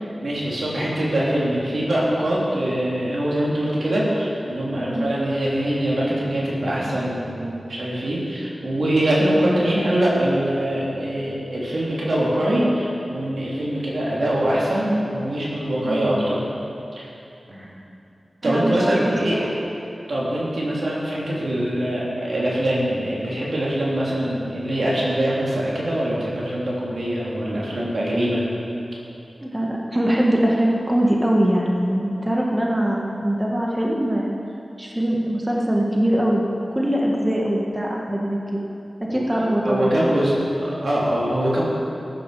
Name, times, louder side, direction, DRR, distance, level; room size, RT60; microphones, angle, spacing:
voice 1, 0.2-16.4 16.9-17.1 17.5-17.7 18.4-19.5 20.1-28.4 39.1-41.6, right 1 dB, 75° right, -6 dB, 3.3 m, -23 dB
voice 2, 4.7-5.1 15.8-16.3 17.5-17.7 18.4-19.5 29.4-34.3 34.8-36.4 36.7-38.6 39.0-39.9, right 1 dB, 20° right, -2 dB, 1.9 m, -22 dB
14.0 x 10.5 x 5.1 m, 2.8 s
cardioid pair, 40°, 0 cm